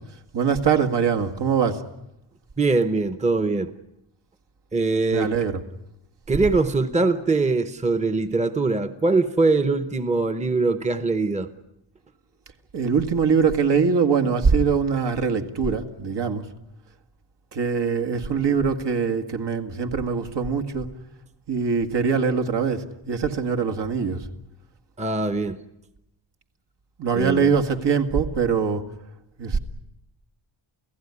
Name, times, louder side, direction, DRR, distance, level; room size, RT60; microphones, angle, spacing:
voice 1, 0.3-1.8 5.1-5.5 12.7-16.5 17.5-20.9 21.5-24.3 27.0-28.9 29.4-29.6, right 6 dB, 65° right, 2.0 m, -22 dB
voice 2, 2.6-3.7 4.7-5.3 6.3-11.5 25.0-25.6 27.1-27.5, right 3 dB, 15° right, 0.9 m, -22 dB
29.0 x 16.0 x 9.8 m
wide cardioid pair, 150°, 44 cm